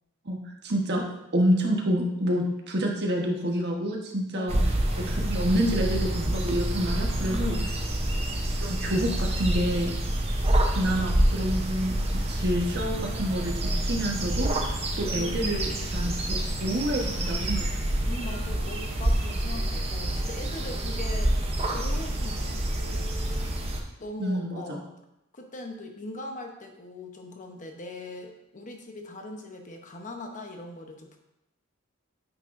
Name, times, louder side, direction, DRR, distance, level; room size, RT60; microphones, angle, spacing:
voice 1, 0.6-1.0 1.3-4.6 5.1-7.6 8.6-9.9 10.7-14.7 15.0-17.6 24.2-24.8, equal, 55° right, 0 dB, 1.3 m, -28 dB
sound 1, 4.5-23.8, right 1 dB, 30° right, 0.9 m, -27 dB
voice 2, 4.9-5.2 7.2-7.8 15.2-15.6 18.0-21.4 21.7-23.1 24.0-24.8 25.3-31.2, left 1 dB, 35° left, 3 dB, 0.9 m, -40 dB
9.2 x 6.1 x 2.6 m, 0.88 s
head